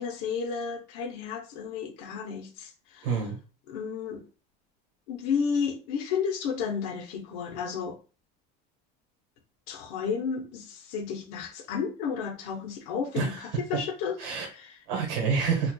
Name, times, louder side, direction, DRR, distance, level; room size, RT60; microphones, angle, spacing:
voice 1, 0.0-3.1 3.7-4.2 5.1-8.0 9.7-14.1 14.6-14.7, left 6 dB, 75° left, 4 dB, 0.8 m, -32 dB
voice 2, 3.0-3.4 13.1-13.6 14.2-14.5 14.9-15.7, right 5 dB, 85° right, -1 dB, 1.4 m, -28 dB
4.2 x 2.4 x 2.2 m, 0.35 s
cardioid pair, 160°, 20 cm